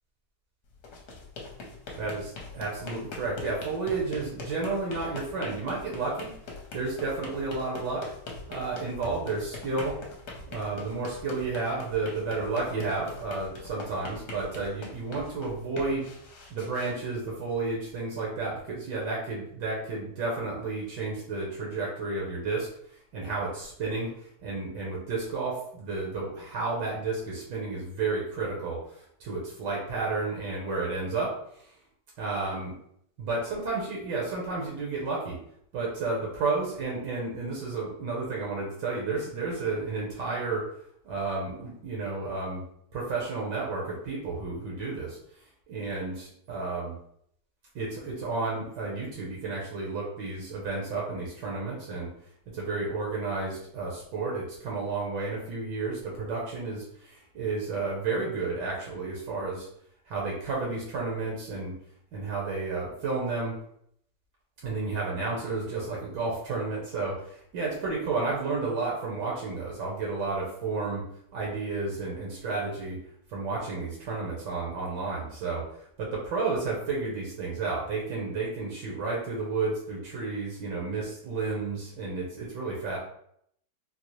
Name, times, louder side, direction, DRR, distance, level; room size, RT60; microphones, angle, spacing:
sound 1, 0.7-17.7, left 3 dB, 65° left, 1.1 m, -43 dB
voice 1, 1.9-6.3 6.7-8.0 8.5-9.9 10.5-16.1 16.5-22.7 23.1-24.1 24.4-28.8 29.2-31.3 32.2-32.7 33.2-35.4 35.7-40.6 41.0-42.6 42.9-45.2 45.7-47.0 47.7-52.1 52.5-59.7 60.1-61.8 62.1-63.6 64.6-71.0 71.3-73.0 73.3-75.6 76.0-83.0, right 3 dB, 75° right, -3 dB, 1.5 m, -31 dB
4.0 x 2.0 x 3.0 m, 0.69 s
omnidirectional pair, 1.9 m